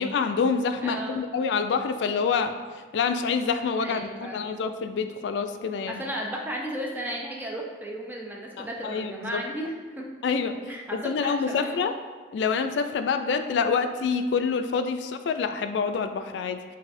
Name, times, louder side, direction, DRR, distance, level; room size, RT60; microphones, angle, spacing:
voice 1, 0.0-2.5 2.9-6.0 8.6-9.4 10.2-10.6 11.0-11.9 12.3-16.8, left 5 dB, 80° left, 8 dB, 0.3 m, -27 dB
voice 2, 0.8-1.3 3.8-4.4 5.9-10.1 10.7-11.8, equal, 10° right, -1 dB, 0.5 m, -34 dB
6.0 x 2.6 x 2.5 m, 1.4 s
head